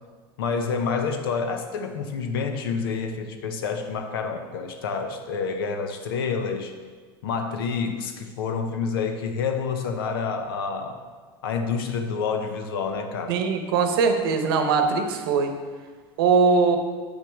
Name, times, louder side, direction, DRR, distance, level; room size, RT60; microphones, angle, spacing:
voice 1, 0.4-6.7 7.2-11.0 11.4-13.4, left 5 dB, 80° left, 6 dB, 0.8 m, -28 dB
voice 2, 13.3-15.5 16.2-16.8, right 5 dB, 80° right, 6 dB, 0.9 m, -21 dB
8.4 x 6.0 x 3.5 m, 1.5 s
hypercardioid pair, 90°, 12 cm